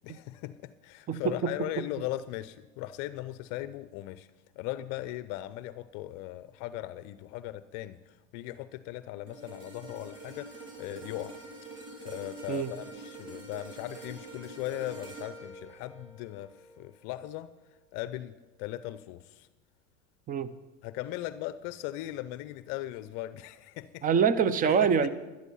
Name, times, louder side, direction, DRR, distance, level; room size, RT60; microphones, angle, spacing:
voice 1, 0.0-4.3 4.6-11.4 12.0-17.5 17.9-19.5 20.8-24.1 24.6-25.1, left 15 dB, 50° left, 14 dB, 0.6 m, -38 dB
voice 2, 1.1-1.5 12.5-12.7 20.3-20.5 24.0-25.1, right 6 dB, 20° right, 15 dB, 0.6 m, -25 dB
sound 1, 9.3-17.6 18.1-18.3, right 2 dB, 55° right, 3.9 m, -46 dB
12.5 x 12.0 x 5.5 m, 1.1 s
hypercardioid pair, 110°, 39 cm